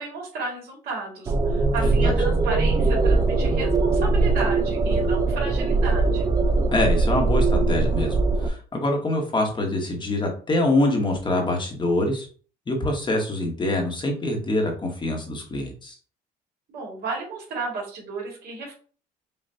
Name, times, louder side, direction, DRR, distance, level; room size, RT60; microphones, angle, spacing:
voice 1, 0.0-6.3 16.7-18.7, right 3 dB, 65° right, -1 dB, 2.1 m, -33 dB
sound 1, 1.3-8.5, right 3 dB, 20° right, 0.5 m, -21 dB
voice 2, 1.8-2.1 6.7-8.1 8.4-12.3 12.7-15.9, left 1 dB, 30° left, 2 dB, 1.1 m, -25 dB
5.4 x 2.4 x 2.7 m, 0.41 s
cardioid pair, 110°, 17 cm